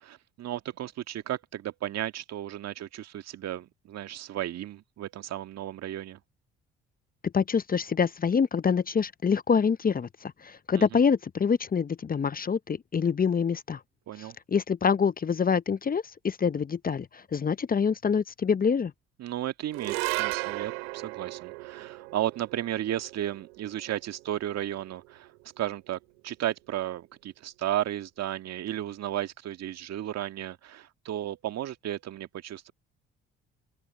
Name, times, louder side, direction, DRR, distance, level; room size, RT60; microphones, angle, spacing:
voice 1, 0.0-6.2 10.8-11.0 14.1-14.4 19.2-25.3 25.6-32.7, right 12 dB, 60° right, 1.8 m, -34 dB
voice 2, 7.3-13.8 14.5-18.9, left 6 dB, 30° left, 0.8 m, -26 dB
sound 1, 19.7-26.2, right 28 dB, 80° right, 3.2 m, -36 dB
open air
hypercardioid pair, 50°, 30 cm